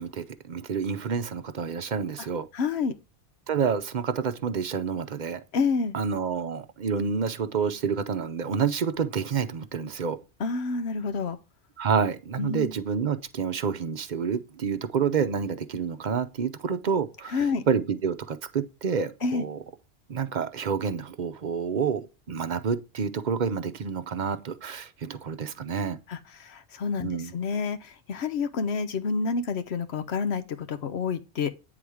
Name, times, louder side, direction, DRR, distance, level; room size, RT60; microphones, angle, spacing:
voice 1, 0.0-2.5 3.5-5.4 5.9-10.2 11.8-17.4 17.7-19.6 20.1-26.0 27.0-27.3, right 6 dB, 50° right, 0.7 m, -28 dB
voice 2, 2.5-2.9 5.5-6.0 10.4-11.4 12.4-12.7 17.3-17.6 19.2-19.5 26.1-31.5, left 5 dB, 75° left, 1.1 m, -29 dB
9.3 x 3.9 x 4.8 m
omnidirectional pair, 1.1 m